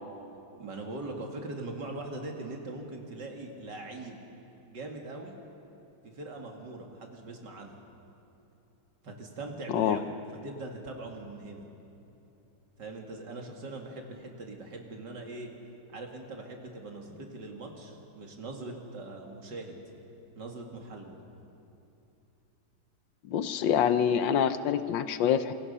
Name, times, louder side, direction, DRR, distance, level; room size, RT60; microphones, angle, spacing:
voice 1, 0.6-4.2 4.7-5.4 6.1-7.8 9.0-10.1 10.4-11.7 12.8-15.5 15.9-19.8 20.4-21.2, right 2 dB, 70° right, 1 dB, 3.0 m, -41 dB
voice 2, 23.3-25.5, left 8 dB, 80° left, 11 dB, 1.6 m, -26 dB
27.5 x 24.0 x 5.6 m, 2.8 s
omnidirectional pair, 2.0 m